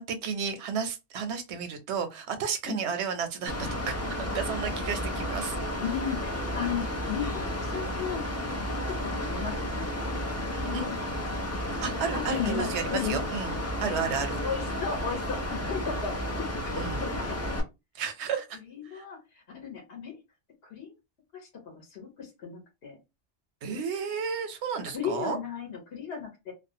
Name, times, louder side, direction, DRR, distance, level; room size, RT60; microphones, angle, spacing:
voice 1, 0.0-5.6 10.7-10.9 11.8-13.6 13.8-14.4 16.7-17.0 17.9-18.6 18.9-19.0 23.6-25.4, right 6 dB, 85° right, 0.9 m, -32 dB
Mechanical fan, 3.5-17.6, left 1 dB, 25° left, 0.3 m, -32 dB
voice 2, 5.8-8.2 8.9-9.9 10.2-10.9 12.1-13.2 14.3-17.4 18.7-20.2 20.6-20.9 21.6-23.0 24.9-26.5, left 7 dB, 65° left, 1.0 m, -35 dB
2.4 x 2.1 x 2.7 m
omnidirectional pair, 1.1 m